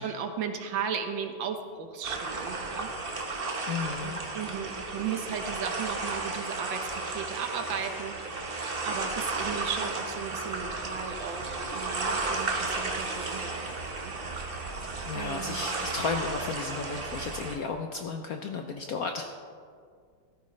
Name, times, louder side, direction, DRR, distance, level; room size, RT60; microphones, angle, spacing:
voice 1, 0.0-3.1 4.0-8.6 8.8-14.1 15.1-15.6, right 7 dB, 70° right, 6 dB, 1.7 m, -36 dB
sound 1, 2.0-17.6, right 3 dB, 35° right, 1.1 m, -34 dB
voice 2, 3.2-4.2 15.1-19.3, left 4 dB, 70° left, 4 dB, 0.9 m, -34 dB
15.0 x 13.5 x 3.2 m, 2.1 s
omnidirectional pair, 2.2 m